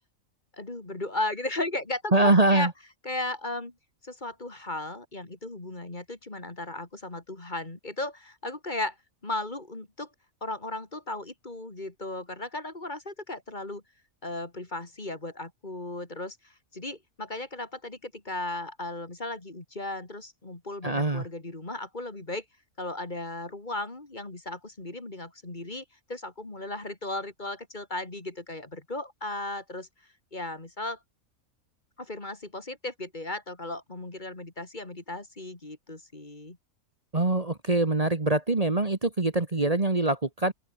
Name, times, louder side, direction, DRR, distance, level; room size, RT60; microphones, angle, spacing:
voice 1, 0.5-2.7 3.0-3.7 4.0-9.0 9.2-10.1 10.4-13.8 14.2-22.4 22.8-29.9 30.3-31.0 32.0-36.6, left 2 dB, 35° left, 2.9 m, -36 dB
voice 2, 2.1-2.7 20.8-21.2 37.1-40.5, right 2 dB, 30° right, 1.6 m, -24 dB
open air
omnidirectional pair, 1.4 m